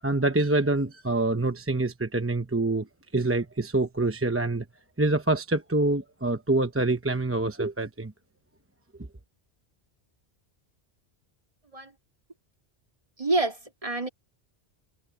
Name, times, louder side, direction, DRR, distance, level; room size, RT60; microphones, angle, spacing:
voice 1, 0.0-2.9 3.1-4.6 5.0-8.1, right 2 dB, 15° right, 0.8 m, -26 dB
voice 2, 13.2-14.1, right 2 dB, 30° right, 2.5 m, -27 dB
omnidirectional pair, 1.1 m